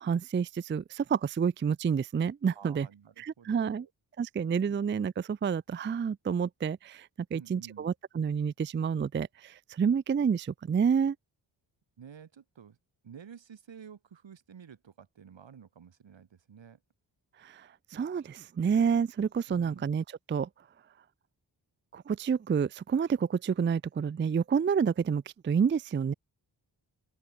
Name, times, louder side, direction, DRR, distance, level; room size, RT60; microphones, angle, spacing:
voice 1, 0.0-2.9 3.2-3.9 4.2-11.2 17.4-20.5 21.9-26.1, right 6 dB, 30° right, 0.4 m, -29 dB
voice 2, 2.5-3.9 4.7-4.8 7.3-7.9 12.0-12.8 13.0-16.8 19.5-19.9, right 7 dB, 80° right, 7.4 m, -51 dB
open air
wide cardioid pair, 170°, 44 cm